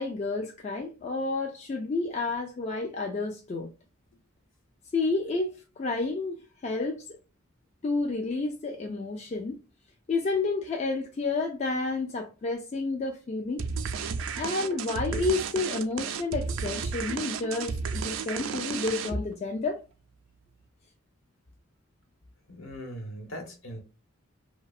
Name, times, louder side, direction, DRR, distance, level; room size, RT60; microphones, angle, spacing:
voice 1, 0.0-3.7 4.9-7.0 7.8-9.6 10.1-13.6 14.4-19.8, left 3 dB, 35° left, 0.3 m, -30 dB
sound 1, 13.6-19.4, right 5 dB, 70° right, 0.4 m, -33 dB
voice 2, 22.5-23.8, equal, 65° left, 1.0 m, -40 dB
2.7 x 2.2 x 2.3 m
head